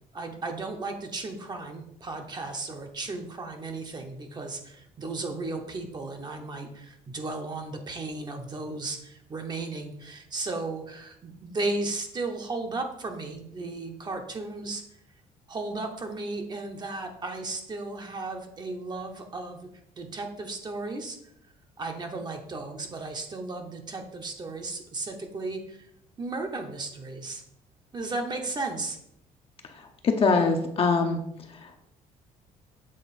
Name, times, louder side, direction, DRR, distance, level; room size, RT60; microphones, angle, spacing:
voice 1, 0.1-14.8 15.5-19.7 20.0-21.2 21.8-25.9 26.2-27.4 27.9-29.0, right 3 dB, 30° right, 4 dB, 0.9 m, -35 dB
voice 2, 29.7-31.2 31.6-31.8, left 4 dB, 40° left, 3 dB, 0.8 m, -24 dB
7.6 x 3.6 x 4.1 m, 0.75 s
cardioid pair, 130°, 15 cm